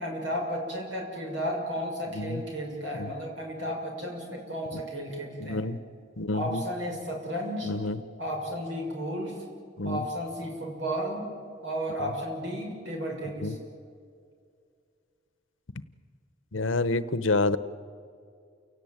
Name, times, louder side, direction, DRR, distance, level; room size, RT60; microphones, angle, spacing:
voice 1, 0.0-5.6 6.3-7.7 8.2-9.4 9.8-11.3 11.6-13.6, equal, 75° right, 1 dB, 6.5 m, -33 dB
voice 2, 5.4-5.8 6.2-6.6 7.6-8.0 9.8-10.0 13.4-13.6 16.5-17.6, left 2 dB, 85° left, 15 dB, 1.0 m, -28 dB
29.0 x 17.5 x 9.0 m, 2.3 s
head